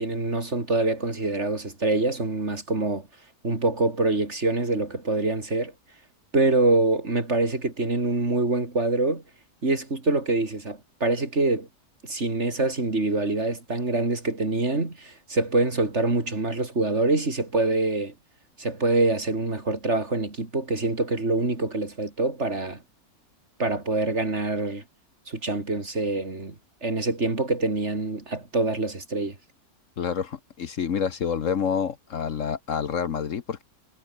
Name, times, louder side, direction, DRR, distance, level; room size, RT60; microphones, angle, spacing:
voice 1, 0.0-3.1 3.4-5.7 6.3-9.2 9.6-11.7 12.0-18.1 18.6-22.8 23.6-24.8 25.3-26.5 26.8-29.4, right 2 dB, 45° right, 4.0 m, -25 dB
voice 2, 30.0-33.6, left 7 dB, 60° left, 1.4 m, -28 dB
omnidirectional pair, 1.6 m